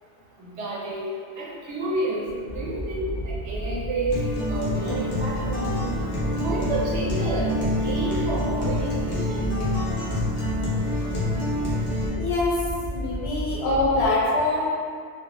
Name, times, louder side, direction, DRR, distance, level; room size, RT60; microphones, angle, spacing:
voice 1, 0.4-1.0 1.4-4.2 4.5-5.8 6.3-9.5, right 1 dB, 90° right, -6 dB, 1.0 m, -30 dB
sound 1, 2.5-14.1, right 1 dB, ahead, 0.5 m, -32 dB
Acoustic guitar, 4.1-12.1, left 1 dB, 40° left, 0.6 m, -27 dB
voice 2, 12.2-12.6 12.9-14.7, left 2 dB, 70° left, -6 dB, 0.8 m, -24 dB
2.4 x 2.0 x 2.8 m, 2.1 s
omnidirectional pair, 1.1 m